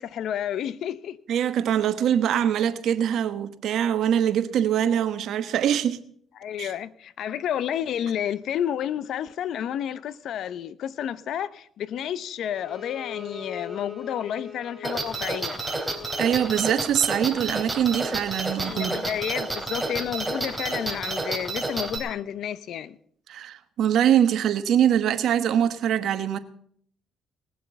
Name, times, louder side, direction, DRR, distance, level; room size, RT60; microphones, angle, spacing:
voice 1, 0.0-1.2 6.4-15.6 18.6-23.0, left 10 dB, 70° left, 0.7 m, -30 dB
voice 2, 1.3-6.0 6.6-6.7 16.2-18.9 23.3-26.4, right 9 dB, 70° right, 1.2 m, -23 dB
Bowed string instrument, 12.6-16.8, left 6 dB, 5° left, 3.8 m, -40 dB
sound 1, 14.8-22.0, right 2 dB, 15° right, 3.1 m, -30 dB
19.5 x 7.6 x 6.9 m
cardioid pair, 80°, 0 cm